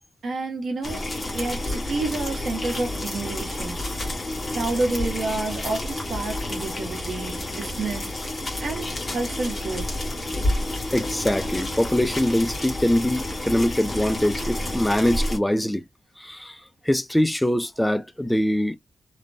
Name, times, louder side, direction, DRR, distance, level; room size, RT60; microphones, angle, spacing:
voice 1, 0.2-3.8 4.5-8.1 8.6-9.9, right 3 dB, 55° right, 0.9 m, -29 dB
sound 1, 0.8-15.4, left 1 dB, 30° left, 1.1 m, -30 dB
voice 2, 10.9-15.8 16.2-18.8, left 1 dB, 5° left, 0.3 m, -23 dB
3.1 x 2.1 x 2.5 m
wide cardioid pair, 175°, 0 cm